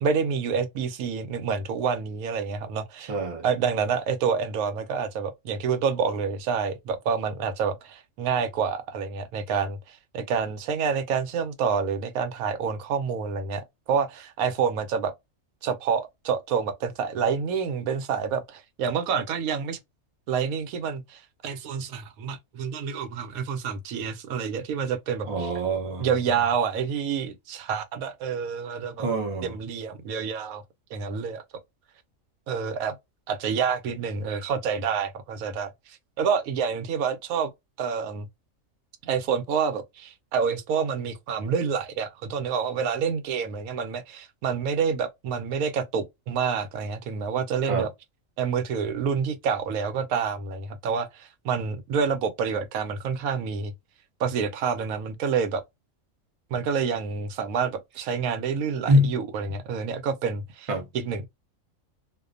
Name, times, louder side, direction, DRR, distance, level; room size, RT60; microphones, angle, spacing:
voice 1, 0.0-3.1 3.4-15.1 15.6-19.8 20.3-25.5 26.0-29.1 29.4-30.6 30.9-31.4 32.5-33.0 33.3-37.5 37.8-38.3 39.0-47.9 48.4-53.7 54.2-55.6 56.5-61.3, right 6 dB, 90° right, 1.0 m, -28 dB
voice 2, 3.1-3.4 25.3-26.1 29.0-29.6 47.7-47.9 58.9-59.1 60.7-60.9, equal, 40° right, 0.5 m, -24 dB
2.4 x 2.2 x 2.4 m
omnidirectional pair, 1.4 m